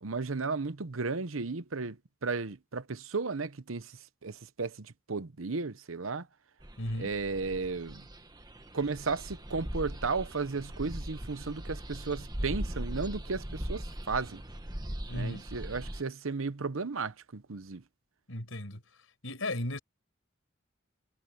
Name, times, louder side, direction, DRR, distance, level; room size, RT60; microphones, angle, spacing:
voice 1, 0.0-6.3 7.0-8.0 8.7-14.4 15.1-17.8, right 4 dB, 80° right, 1.0 m, -34 dB
sound 1, 6.6-16.0, equal, 20° right, 1.5 m, -40 dB
voice 2, 6.8-7.1 15.1-15.5 18.3-18.8 19.2-19.8, left 1 dB, 80° left, 5.4 m, -35 dB
head